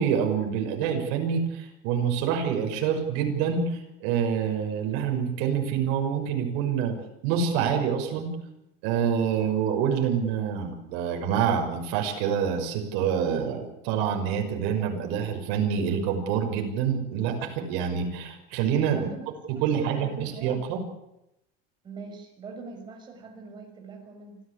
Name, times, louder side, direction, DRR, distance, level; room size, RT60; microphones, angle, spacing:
voice 1, 0.0-7.0 7.2-8.3 8.8-19.1 19.6-20.8, right 7 dB, 65° right, 3 dB, 6.0 m, -26 dB
voice 2, 18.9-20.6 21.8-24.4, right 4 dB, 20° right, 3 dB, 5.9 m, -43 dB
25.5 x 15.5 x 8.5 m, 0.86 s
cardioid pair, 175°, 20 cm